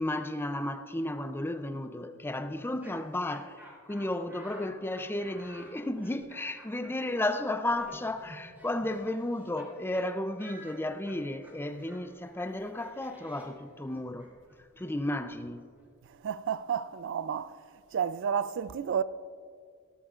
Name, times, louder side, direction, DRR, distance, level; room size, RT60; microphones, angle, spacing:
voice 1, 0.0-3.6 3.9-14.3 14.8-15.6, left 1 dB, 10° left, 0.4 m, -33 dB
Laughter, 2.5-9.7 9.9-10.1 10.4-16.1, equal, 10° right, 3.3 m, -54 dB
voice 2, 16.1-17.6 17.9-19.0, right 7 dB, 60° right, 0.3 m, -31 dB
17.5 x 13.0 x 2.4 m
head